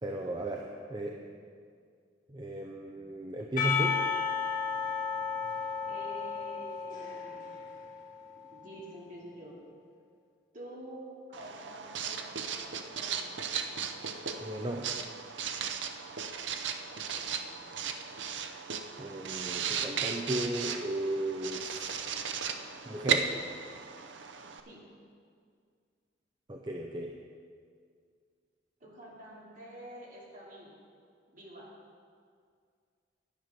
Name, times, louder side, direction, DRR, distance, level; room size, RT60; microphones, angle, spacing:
voice 1, 0.0-1.2 2.3-4.0 14.4-14.9 19.0-22.0 22.8-23.3 26.5-27.1, right 1 dB, 25° right, 1 dB, 0.6 m, -35 dB
Percussion / Church bell, 3.6-8.6, left 6 dB, 45° left, 2.7 m, -33 dB
voice 2, 5.8-7.6 8.5-9.6 10.5-13.4 16.8-17.4 24.6-24.8 28.8-30.8 31.3-31.7, right 1 dB, 45° right, -4 dB, 2.7 m, -48 dB
Writing, 11.3-24.6, right 6 dB, 75° right, 0.7 m, -36 dB
10.5 x 9.3 x 6.0 m, 2.1 s
head